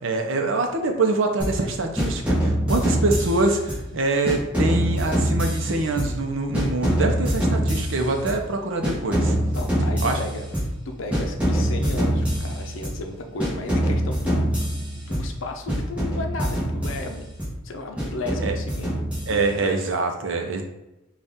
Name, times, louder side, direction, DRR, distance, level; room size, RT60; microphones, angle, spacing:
voice 1, 0.0-9.4 10.0-10.2 18.4-18.6 19.3-20.6, right 3 dB, 70° right, 4 dB, 0.6 m, -24 dB
sound 1, 1.4-1.7 2.0-3.9 4.2-6.3 6.5-8.5 8.8-10.8 11.1-13.1 13.4-15.4 15.7-17.6 18.0-19.6, equal, 5° right, 1.0 m, -25 dB
voice 2, 9.5-10.4 10.8-14.7 15.0-17.3 17.6-19.0 19.3-19.8, left 2 dB, 75° left, 4 dB, 0.6 m, -34 dB
4.1 x 2.4 x 3.5 m, 0.95 s
head